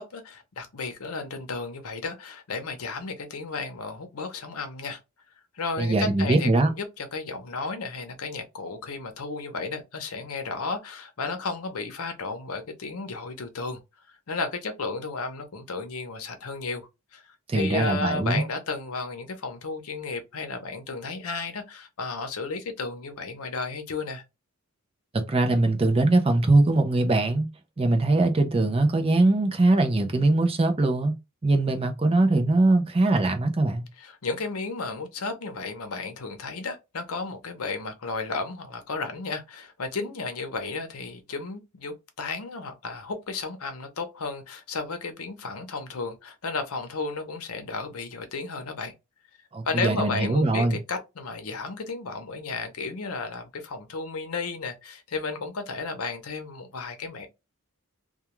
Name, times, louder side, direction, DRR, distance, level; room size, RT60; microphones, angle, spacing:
voice 1, 0.0-5.0 5.5-13.8 14.1-24.2 34.0-48.9 49.6-57.3, left 4 dB, 80° left, 0.7 m, -33 dB
voice 2, 5.8-6.7 17.5-18.4 25.1-27.5 27.8-31.1 31.4-33.9 49.5-50.8, right 2 dB, 25° right, 0.4 m, -22 dB
2.3 x 2.3 x 2.9 m
head